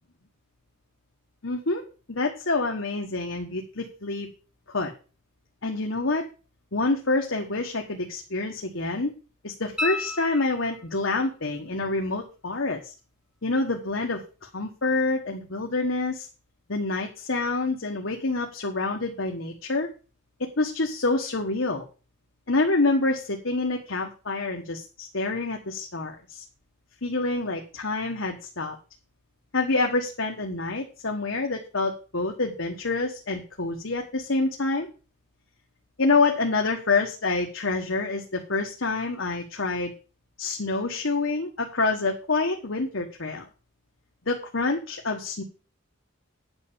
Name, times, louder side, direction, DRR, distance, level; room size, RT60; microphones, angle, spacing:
voice 1, 1.4-1.8 2.1-4.3 4.7-4.9 5.6-6.2 6.7-9.1 9.4-12.8 13.4-16.3 16.7-19.9 20.6-21.8 22.5-26.4 27.0-28.8 29.5-34.9 36.0-39.9 40.4-43.5 44.3-45.4, left 3 dB, 65° left, 2 dB, 1.4 m, -27 dB
sound 1, 9.8-11.1 13.9-14.0, left 2 dB, 5° right, 0.8 m, -32 dB
9.5 x 5.7 x 6.8 m, 0.35 s
head